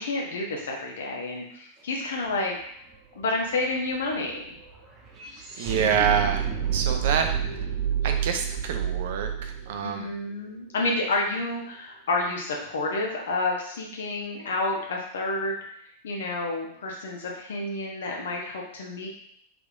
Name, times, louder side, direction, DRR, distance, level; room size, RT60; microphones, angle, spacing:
voice 1, 0.0-2.6 3.1-4.6 5.7-6.3 9.8-15.6 16.0-19.1, left 2 dB, 60° left, -1 dB, 0.8 m, -30 dB
sound 1, 2.2-2.3 2.6-10.8, right 8 dB, 30° right, 0.8 m, -30 dB
voice 2, 5.6-6.5 6.7-7.3 8.0-10.1, right 7 dB, 55° right, 5 dB, 0.4 m, -26 dB
3.4 x 3.1 x 2.4 m, 0.70 s
figure-of-eight pair, 90°, 0 cm